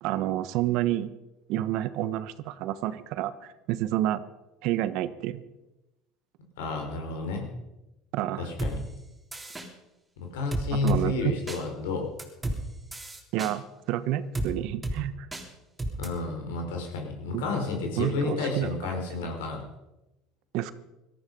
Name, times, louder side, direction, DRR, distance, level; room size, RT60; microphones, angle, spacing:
voice 1, 0.0-1.1 1.5-4.2 4.6-5.4 8.1-8.5 10.8-11.2 13.3-15.3 17.3-17.4 18.0-18.7 19.2-19.3 20.5-20.7, right 13 dB, 65° right, 14 dB, 1.1 m, -29 dB
voice 2, 6.6-7.4 8.4-8.8 10.2-12.1 16.0-19.6, left 3 dB, 85° left, 3 dB, 4.2 m, -31 dB
sound 1, 8.6-8.7 9.3-9.7 10.5-11.0 11.5-11.6 12.2-12.6 12.9-13.5 14.3-14.5 14.8-15.0 15.3-15.4 15.8-16.1, right 1 dB, 15° right, 3.5 m, -31 dB
18.0 x 13.5 x 5.3 m, 0.97 s
supercardioid pair, 95°, 0 cm